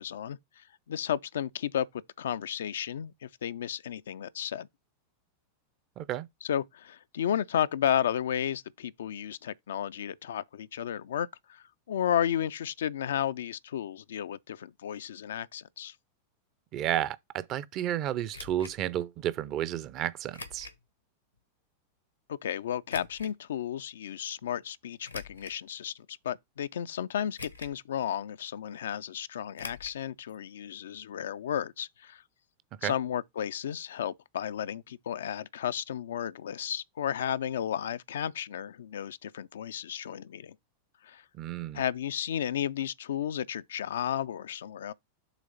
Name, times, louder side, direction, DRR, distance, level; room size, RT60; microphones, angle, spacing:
voice 1, 0.0-1.9 2.2-4.7 6.4-15.9 22.3-32.2 32.8-40.6 41.0-41.2 41.7-44.9, left 9 dB, 60° left, 0.3 m, -33 dB
voice 2, 6.0-6.3 16.7-20.7 32.8-32.9 41.3-41.8, right 12 dB, 35° right, 0.5 m, -32 dB
sound 1, 18.3-18.8 20.3-20.8 21.4-21.5 22.9-23.3 25.0-25.6 26.2-26.3 27.4-27.9 28.1-28.2 29.6-30.0 30.3-30.4 30.7-30.8, left 3 dB, 85° left, 1.0 m, -44 dB
7.2 x 3.0 x 5.5 m
figure-of-eight pair, 90°, 0 cm